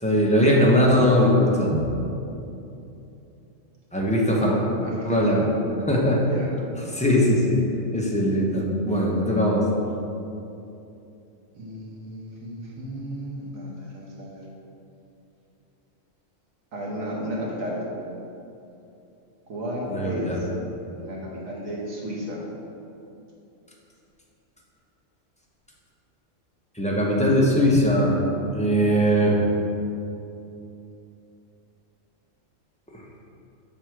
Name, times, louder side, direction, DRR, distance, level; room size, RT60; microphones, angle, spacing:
voice 1, 0.0-1.8 3.9-4.6 5.0-5.4 5.9-6.2 6.9-7.6 7.9-9.7 19.9-20.4 26.8-28.2 28.5-29.4, equal, 10° left, -4 dB, 0.5 m, -20 dB
voice 2, 4.8-5.5 6.3-6.5 11.5-14.4 16.7-17.8 19.5-20.5 20.9-22.4, equal, 90° right, -4 dB, 1.5 m, -33 dB
6.0 x 3.9 x 4.5 m, 2.8 s
omnidirectional pair, 1.4 m